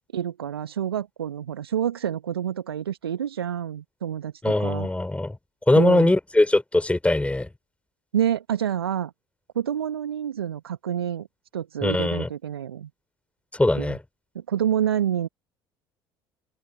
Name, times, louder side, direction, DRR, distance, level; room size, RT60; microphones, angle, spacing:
voice 1, 0.1-4.9 5.8-6.1 8.1-9.1 9.6-11.3 11.5-12.9 13.8-14.0 14.4-15.3, right 9 dB, 80° right, 1.8 m, -28 dB
voice 2, 4.4-5.4 5.7-7.5 11.8-12.3 13.5-14.0, left 2 dB, 10° left, 5.2 m, -21 dB
open air
figure-of-eight pair, 55°, 13 cm